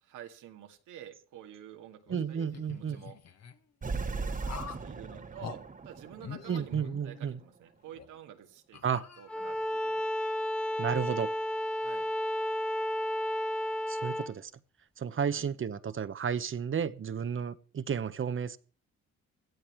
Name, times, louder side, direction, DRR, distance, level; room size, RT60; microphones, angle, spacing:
voice 1, 0.0-3.2 3.9-10.1 11.8-12.1 15.3-15.5, right 11 dB, 90° right, 5 dB, 2.2 m, -50 dB
sound 1, 2.1-3.5 4.4-4.9 5.4-5.6 6.2-7.5 7.9-8.1 8.7-9.6, left 7 dB, 60° left, 2.0 m, -45 dB
voice 2, 2.1-3.0 6.5-7.4 8.8-9.0 10.8-11.3 13.9-14.5 15.0-18.6, right 7 dB, 40° right, 14 dB, 1.1 m, -32 dB
sound 2, 3.8-7.2, right 4 dB, 25° right, 1.3 m, -38 dB
Bowed string instrument, 9.3-14.3, left 1 dB, 5° left, 1.1 m, -32 dB
17.5 x 12.5 x 4.6 m, 0.39 s
cardioid pair, 90°, 30 cm